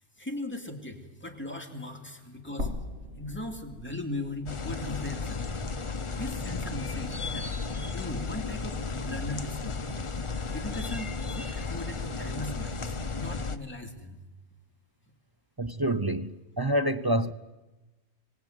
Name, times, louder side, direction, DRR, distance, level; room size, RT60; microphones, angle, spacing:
voice 1, 0.2-2.8 3.2-5.5 6.1-7.5 7.9-9.8 10.5-11.1 11.4-14.2, left 1 dB, 5° left, 2.7 m, -38 dB
sound 1, 2.6-6.7 7.1-7.2 8.6-8.7, left 2 dB, 50° right, 2.3 m, -41 dB
sound 2, 4.5-13.6, left 4 dB, 25° left, 0.7 m, -34 dB
voice 2, 15.6-17.3, right 1 dB, 25° right, 0.6 m, -27 dB
26.0 x 18.5 x 9.4 m
omnidirectional pair, 1.5 m